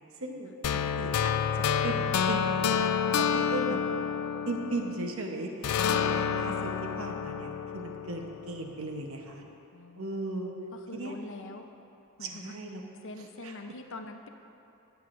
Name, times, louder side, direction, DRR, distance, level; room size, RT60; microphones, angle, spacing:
voice 1, 0.1-0.5 1.0-2.9 3.2-3.8 4.5-9.4 10.0-10.5 10.9-11.1 12.2-12.8 13.2-13.6, right 2 dB, 65° right, 2 dB, 0.9 m, -37 dB
sound 1, 0.6-5.2 5.6-8.7, left 7 dB, 80° left, 0.4 m, -29 dB
voice 2, 3.0-3.8 9.7-10.2 10.7-11.7 12.2-12.6 13.0-14.3, left 2 dB, 60° left, 5 dB, 0.7 m, -44 dB
22.0 x 8.0 x 2.6 m, 2.9 s
head